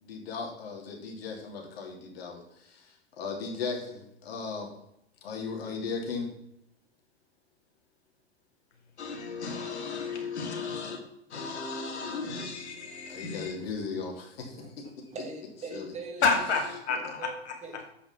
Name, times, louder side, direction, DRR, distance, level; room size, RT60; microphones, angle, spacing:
voice 1, 0.0-4.7 5.2-6.3 13.1-14.6 15.7-15.9, left 4 dB, 65° left, 1 dB, 2.8 m, -37 dB
voice 2, 9.0-11.0 11.3-13.5 16.2-17.5, left 4 dB, 80° left, 2 dB, 2.4 m, -32 dB
voice 3, 15.1-16.5 17.2-17.3 17.6-17.9, right 3 dB, 20° right, 2 dB, 1.9 m, -41 dB
8.2 x 5.7 x 5.8 m, 0.77 s
hypercardioid pair, 115°, 33 cm